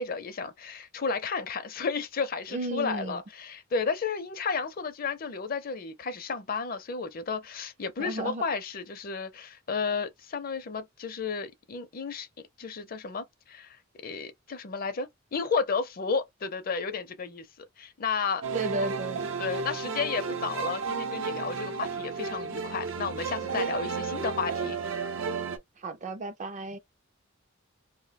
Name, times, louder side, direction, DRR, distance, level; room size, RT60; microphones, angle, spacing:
voice 1, 0.0-12.3 12.6-13.8 14.0-18.5 19.4-24.8, left 5 dB, 45° left, 0.5 m, -32 dB
voice 2, 2.5-3.2 8.0-8.4 18.5-19.2 25.8-26.8, right 2 dB, 35° right, 0.4 m, -33 dB
sound 1, 18.4-25.6, right 5 dB, 80° right, 0.6 m, -33 dB
2.6 x 2.1 x 4.0 m
head